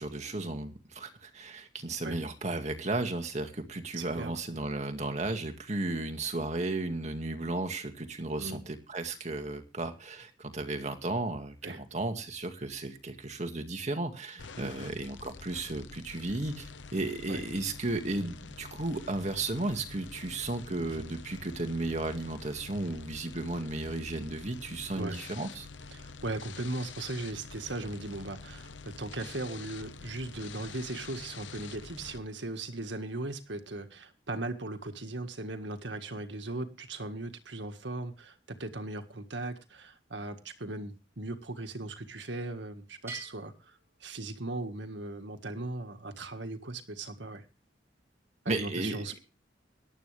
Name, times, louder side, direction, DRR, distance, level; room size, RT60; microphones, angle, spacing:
voice 1, 0.0-25.7 48.5-49.1, right 2 dB, 40° right, 2.1 m, -34 dB
voice 2, 4.0-4.4 8.4-8.6 11.6-11.8 14.6-14.9 17.3-17.4 20.9-21.0 25.0-25.2 25.9-47.4 48.5-49.2, right 2 dB, 75° right, 1.8 m, -38 dB
sound 1, 14.4-32.2, left 4 dB, 90° left, 0.9 m, -47 dB
Bell, 43.1-44.8, right 3 dB, 15° right, 6.9 m, -47 dB
18.0 x 11.5 x 3.4 m
head